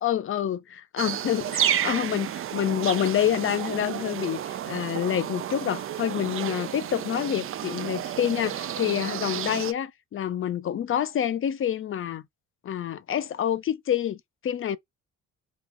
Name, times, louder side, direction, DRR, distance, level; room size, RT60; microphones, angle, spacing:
voice 1, 0.0-12.2 12.6-14.8, left 10 dB, 45° left, 0.5 m, -27 dB
sound 1, 1.0-9.7, right 11 dB, 45° right, 0.4 m, -31 dB
3.1 x 2.4 x 3.7 m
cardioid pair, 90°, 30 cm